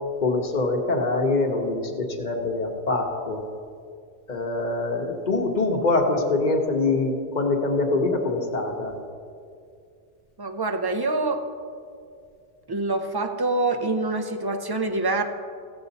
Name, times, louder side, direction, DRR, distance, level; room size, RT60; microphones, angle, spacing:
voice 1, 0.2-3.4 4.3-9.0, left 3 dB, 40° left, 2 dB, 1.1 m, -24 dB
voice 2, 10.4-11.4 12.7-15.2, right 2 dB, 25° right, 5 dB, 0.5 m, -25 dB
16.0 x 7.0 x 4.1 m, 2.3 s
omnidirectional pair, 1.2 m